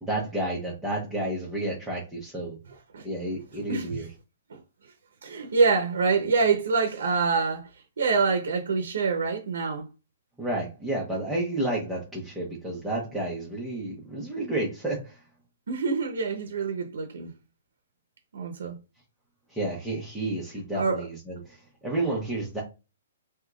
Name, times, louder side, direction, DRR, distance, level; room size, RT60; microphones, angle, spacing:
voice 1, 0.0-2.6 3.0-4.1 10.4-15.2 19.5-22.6, right 1 dB, 5° right, 0.7 m, -31 dB
voice 2, 3.7-4.1 4.5-4.9 5.2-9.9 15.7-17.3 18.3-18.8 20.7-21.0, right 4 dB, 75° right, 0.8 m, -26 dB
3.6 x 2.8 x 2.3 m
hypercardioid pair, 170°, 0 cm